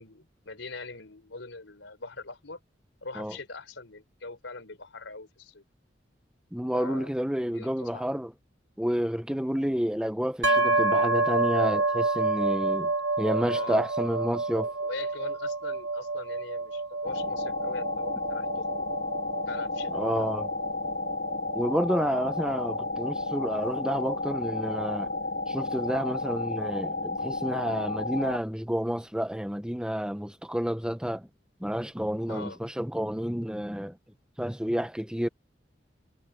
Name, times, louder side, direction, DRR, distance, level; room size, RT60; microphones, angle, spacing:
voice 1, 0.0-2.6 3.0-5.6 6.7-7.1 7.5-8.0 13.5-13.8 14.8-18.9 19.5-20.3 32.3-32.6, left 3 dB, 85° left, 4.0 m, -41 dB
voice 2, 6.5-8.3 8.8-12.9 13.2-14.7 19.9-20.5 21.5-25.1 25.5-31.3 31.6-34.0 34.4-35.3, equal, 5° right, 0.8 m, -30 dB
sound 1, 10.4-24.1, right 3 dB, 65° right, 2.5 m, -29 dB
sound 2, 17.0-28.4, left 3 dB, 60° left, 2.2 m, -32 dB
head